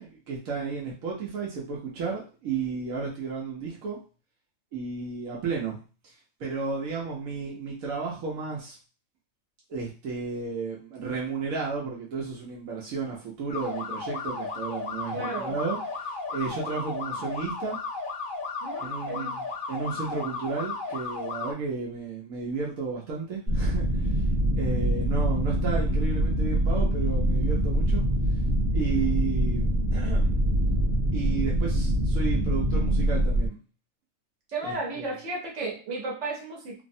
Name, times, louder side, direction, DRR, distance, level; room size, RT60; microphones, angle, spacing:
voice 1, 0.0-4.0 4.7-5.8 6.0-6.1 6.4-8.7 9.7-17.8 18.8-24.1 24.6-28.0 28.7-30.4 31.1-33.6 34.6-35.1, right 5 dB, 85° right, -3 dB, 1.1 m, -33 dB
sound 1, 13.5-21.5, left 3 dB, 65° left, 0.5 m, -34 dB
voice 2, 15.1-15.6 18.6-19.4 34.5-36.8, right 2 dB, 60° right, -2 dB, 1.3 m, -34 dB
sound 2, 23.5-33.5, right 1 dB, 35° right, 0.9 m, -24 dB
3.2 x 2.0 x 2.6 m, 0.35 s
omnidirectional pair, 1.4 m